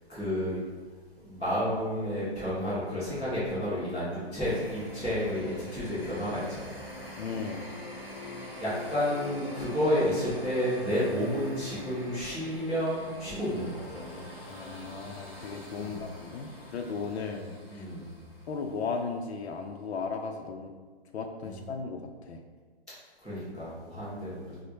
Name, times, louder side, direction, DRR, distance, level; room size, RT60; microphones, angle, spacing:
voice 1, 0.1-0.6 1.2-6.8 8.5-14.2 15.7-16.0 17.3-18.1 21.4-21.6 23.2-24.6, equal, 5° right, -23 dB, 0.5 m, -31 dB
sound 1, 4.4-19.1, left 2 dB, 25° left, 0.9 m, -44 dB
voice 2, 7.2-7.7 14.5-17.9 18.5-20.7 21.1-22.4, left 4 dB, 90° left, 4 dB, 0.5 m, -36 dB
4.0 x 2.1 x 3.2 m, 1.5 s
hypercardioid pair, 175°, 32 cm